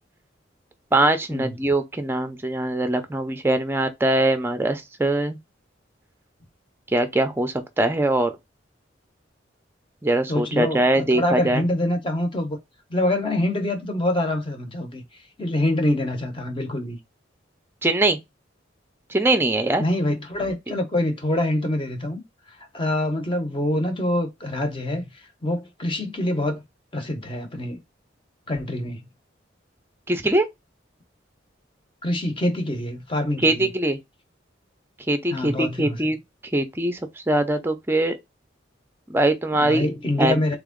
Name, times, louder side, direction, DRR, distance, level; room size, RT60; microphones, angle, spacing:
voice 1, 0.9-5.4 6.9-8.3 10.0-11.6 17.8-18.2 19.1-19.8 30.1-30.4 33.4-34.0 35.1-36.2 36.5-38.2 39.1-39.9 40.2-40.4, right 1 dB, 10° right, 0.5 m, -22 dB
voice 2, 10.3-12.6 12.9-15.0 15.4-17.0 19.8-22.2 22.7-25.1 25.4-26.6 26.9-27.8 28.5-29.1 32.0-33.7 35.3-36.1 39.6-40.6, left 1 dB, 25° left, 0.8 m, -25 dB
3.5 x 3.0 x 3.7 m
head